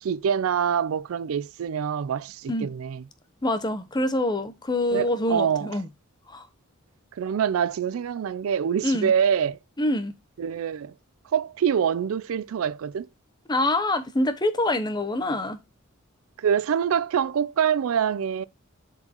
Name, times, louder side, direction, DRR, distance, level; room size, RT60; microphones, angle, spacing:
voice 1, 0.0-3.0 4.9-5.8 7.2-9.6 10.4-10.9 11.3-13.1 16.4-18.4, right 8 dB, 80° right, 0.4 m, -25 dB
voice 2, 3.4-5.9 6.3-6.5 8.8-9.1 9.8-10.1 13.5-15.6, left 1 dB, 20° left, 0.8 m, -25 dB
7.7 x 4.5 x 2.9 m
head